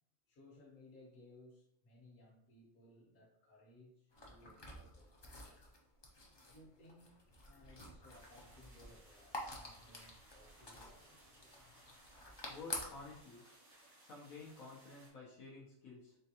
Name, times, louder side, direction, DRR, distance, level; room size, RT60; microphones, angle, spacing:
voice 1, 0.3-5.6 6.4-11.5, left 1 dB, 70° left, -3 dB, 1.6 m, -62 dB
sound 1, 4.1-13.2, left 2 dB, 35° left, 0.4 m, -50 dB
sound 2, 8.1-15.1, right 1 dB, 80° right, 1.9 m, -64 dB
voice 2, 12.5-13.5 14.0-16.2, left 3 dB, 90° left, -5 dB, 1.4 m, -52 dB
4.3 x 3.4 x 2.9 m, 0.77 s
omnidirectional pair, 1.4 m